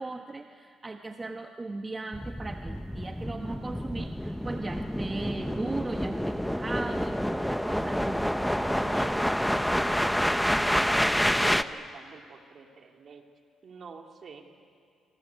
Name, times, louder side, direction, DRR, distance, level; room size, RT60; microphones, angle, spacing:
voice 1, 0.0-8.3, right 3 dB, 25° right, 5 dB, 1.2 m, -38 dB
sound 1, 2.1-11.6, equal, ahead, 0.8 m, -28 dB
voice 2, 7.7-8.1 8.6-10.1 10.6-11.1 11.4-13.3 13.6-14.5, right 5 dB, 50° right, 3 dB, 3.0 m, -47 dB
25.5 x 25.0 x 8.3 m, 2.2 s
cardioid pair, 90°, 0 cm